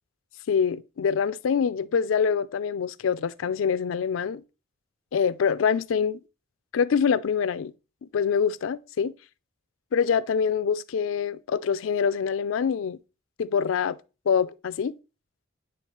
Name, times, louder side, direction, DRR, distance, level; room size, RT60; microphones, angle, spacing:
voice 1, 0.5-4.4 5.1-6.2 6.7-7.7 8.0-9.1 9.9-13.0 13.4-14.0 14.3-14.9, left 6 dB, 85° left, 0.4 m, -25 dB
9.9 x 3.5 x 3.0 m
head